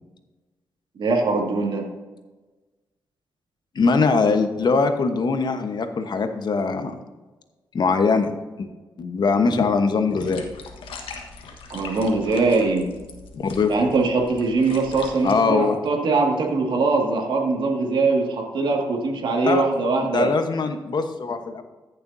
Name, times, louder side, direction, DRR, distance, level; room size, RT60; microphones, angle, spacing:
voice 1, 1.0-1.9 11.7-12.9 13.7-20.3, right 3 dB, 65° right, 0 dB, 2.1 m, -22 dB
voice 2, 3.7-6.9 7.7-8.3 8.6-8.7 9.0-10.5 13.3-13.7 15.2-15.8 19.4-19.6 20.1-21.6, left 4 dB, 55° left, 7 dB, 1.2 m, -21 dB
sound 1, 10.1-15.3, left 4 dB, 85° left, 1.4 m, -41 dB
15.0 x 6.8 x 2.7 m, 1.2 s
cardioid pair, 55°, 9 cm